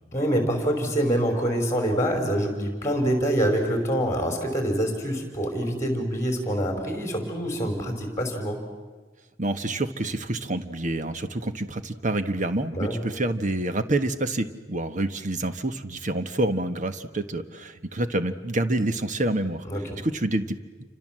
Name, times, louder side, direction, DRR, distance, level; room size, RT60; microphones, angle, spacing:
voice 1, 0.1-8.6 12.7-13.0 19.6-20.0, equal, 15° left, 4 dB, 5.1 m, -25 dB
voice 2, 9.4-19.7 20.0-20.8, right 1 dB, 40° right, 9 dB, 1.4 m, -27 dB
29.0 x 26.0 x 7.7 m, 1.3 s
head